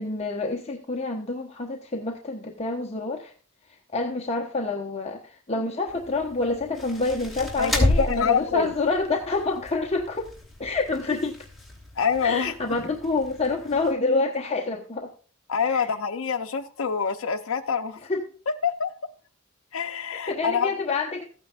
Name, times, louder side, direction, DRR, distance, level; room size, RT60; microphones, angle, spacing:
voice 1, 0.0-3.3 3.7-10.3 10.6-11.4 12.2-15.1 15.6-15.9 18.1-18.2 20.3-21.2, left 3 dB, 30° left, 1.0 m, -27 dB
sound 1, 5.9-13.9, left 1 dB, ahead, 3.0 m, -32 dB
voice 2, 7.6-8.7 12.0-12.5 15.5-18.0 18.6-18.9 19.7-20.7, left 6 dB, 75° left, 0.6 m, -26 dB
15.0 x 9.3 x 2.4 m
head